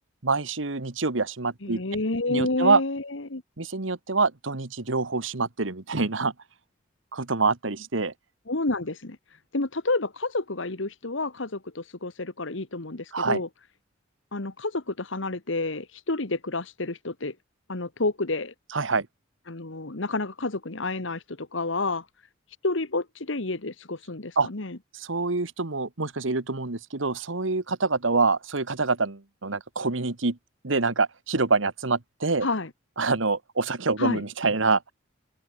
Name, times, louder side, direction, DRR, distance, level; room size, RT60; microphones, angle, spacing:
voice 1, 0.2-1.8 2.3-2.8 3.6-6.3 7.1-8.1 13.1-13.4 18.7-19.1 24.4-24.5 24.9-30.4 30.6-32.5 33.0-34.9, right 3 dB, 75° right, 1.6 m, -26 dB
voice 2, 1.6-3.4 8.5-9.2 9.5-13.5 14.3-17.3 17.7-18.5 19.5-22.1 22.6-24.8 32.4-32.7 34.0-34.2, left 2 dB, 70° left, 1.7 m, -29 dB
open air
head